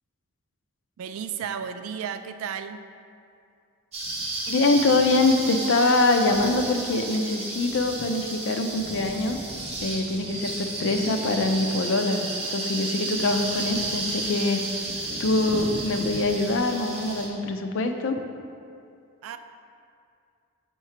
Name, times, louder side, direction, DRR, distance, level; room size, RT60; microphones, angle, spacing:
voice 1, 1.0-2.8 19.2-19.4, right 7 dB, 70° right, 10 dB, 0.3 m, -33 dB
sound 1, 3.9-17.3, right 2 dB, 30° right, 1.0 m, -32 dB
voice 2, 4.5-9.4 9.8-14.6 15.2-18.2, left 2 dB, 60° left, 5 dB, 0.4 m, -24 dB
5.7 x 3.0 x 5.5 m, 2.4 s
head